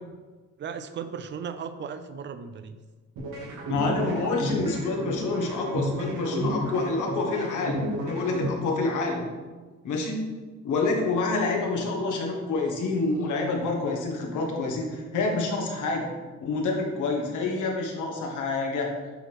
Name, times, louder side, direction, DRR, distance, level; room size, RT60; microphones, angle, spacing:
voice 1, 0.6-2.8 4.0-4.1, right 6 dB, 40° right, 10 dB, 0.5 m, -36 dB
sound 1, 3.2-9.2, equal, 85° right, 2.0 m, -32 dB
voice 2, 3.7-9.3 9.8-10.4 10.6-16.1 16.4-18.9, left 3 dB, 80° left, 1 dB, 1.5 m, -27 dB
9.0 x 4.4 x 3.4 m, 1.3 s
cardioid pair, 90°, 30 cm